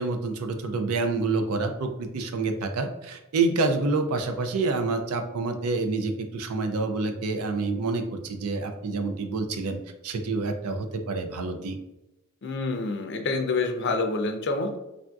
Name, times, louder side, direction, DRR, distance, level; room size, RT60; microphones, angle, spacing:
voice 1, 0.0-11.8, right 3 dB, 90° right, 6 dB, 0.5 m, -28 dB
voice 2, 12.4-14.8, left 3 dB, 50° left, 5 dB, 0.4 m, -27 dB
3.4 x 2.5 x 2.3 m, 0.94 s
head